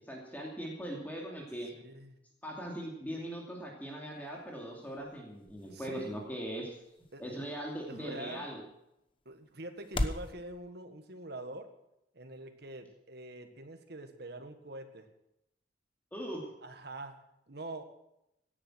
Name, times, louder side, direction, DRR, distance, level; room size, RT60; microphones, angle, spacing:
voice 1, 0.1-1.7 2.4-6.7 7.2-8.6 16.1-16.5, equal, 10° left, -1 dB, 2.6 m, -40 dB
voice 2, 1.8-2.2 5.7-6.1 7.1-7.5 7.9-8.5 9.3-11.7 12.1-15.1 16.6-17.2 17.5-17.8, right 2 dB, 60° right, 6 dB, 1.7 m, -45 dB
sound 1, 4.1-10.3, left 1 dB, 30° left, 1.0 m, -42 dB
17.0 x 10.5 x 6.3 m, 0.84 s
head